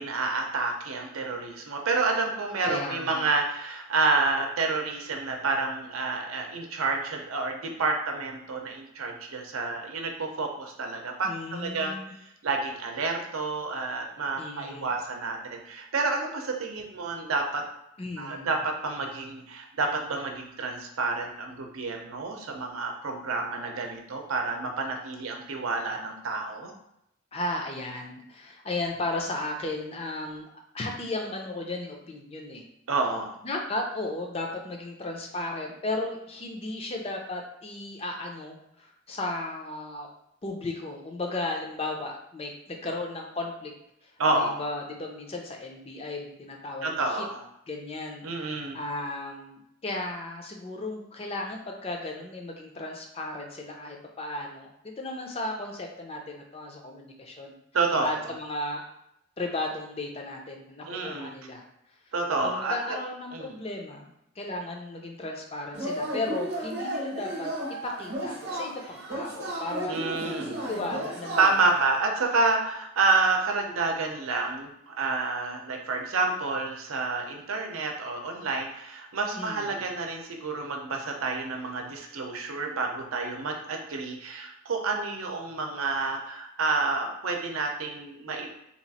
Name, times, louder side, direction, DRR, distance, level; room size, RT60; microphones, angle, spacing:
voice 1, 0.0-12.0 12.4-17.6 18.2-26.7 32.9-33.3 44.2-44.6 46.8-47.4 48.2-48.8 57.7-58.1 60.9-61.3 62.1-63.0 63.3-63.5 69.9-70.6 71.4-88.5, right 3 dB, 90° right, 2 dB, 0.6 m, -29 dB
voice 2, 2.6-3.3 11.2-12.1 14.4-14.9 18.0-18.5 27.3-30.5 30.7-32.7 33.4-40.1 40.4-43.7 44.0-47.2 47.7-57.6 58.0-58.9 59.4-61.6 62.4-64.1 64.4-67.5 67.8-71.4 79.3-79.9, left 2 dB, 30° left, 1 dB, 0.5 m, -35 dB
Yell / Cheering, 65.7-71.9, right 1 dB, 55° right, 0.8 m, -34 dB
2.9 x 2.4 x 4.0 m, 0.81 s
head